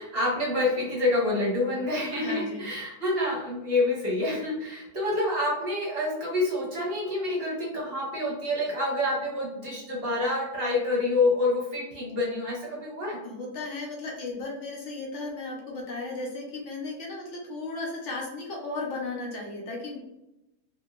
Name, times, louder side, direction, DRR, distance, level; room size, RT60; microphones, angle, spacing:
voice 1, 0.0-13.2, left 2 dB, 45° right, -3 dB, 1.0 m, -27 dB
voice 2, 2.2-2.6 13.2-20.0, left 3 dB, 55° left, -2 dB, 0.9 m, -35 dB
2.8 x 2.7 x 2.3 m, 0.91 s
omnidirectional pair, 1.6 m